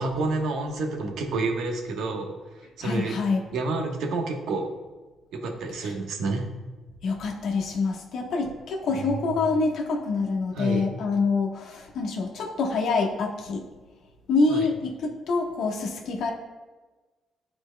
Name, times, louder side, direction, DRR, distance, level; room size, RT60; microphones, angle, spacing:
voice 1, 0.0-2.3 2.8-3.1 3.5-4.7 5.3-6.5 10.6-10.9 14.5-14.6, right 3 dB, 80° right, 2 dB, 1.1 m, -29 dB
voice 2, 2.8-3.5 5.8-5.9 7.0-13.6 14.3-16.3, left 4 dB, 75° left, 0 dB, 1.2 m, -26 dB
12.5 x 4.4 x 2.2 m, 1.3 s
cardioid pair, 90°, 0 cm